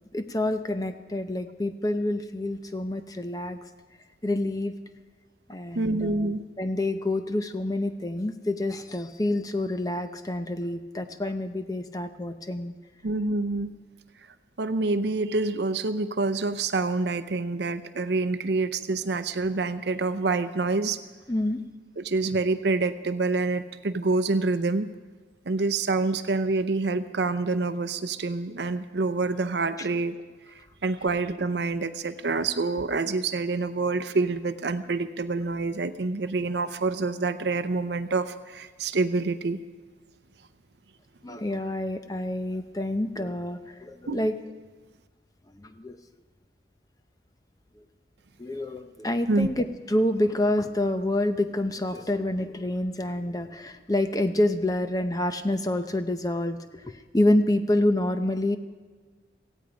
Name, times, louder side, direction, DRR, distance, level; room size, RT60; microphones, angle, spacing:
voice 1, 0.1-3.6 4.2-4.7 5.5-6.3 6.6-12.7 21.3-21.6 41.2-44.3 45.5-46.0 48.4-56.6 56.8-58.6, left 1 dB, 20° left, 8 dB, 0.7 m, -27 dB
voice 2, 5.7-6.4 13.0-13.7 14.6-21.0 22.0-24.9 25.5-30.1 30.8-39.6 44.1-44.2 49.3-49.5, right 3 dB, 70° right, 11 dB, 0.7 m, -27 dB
17.5 x 15.5 x 5.1 m, 1.4 s
head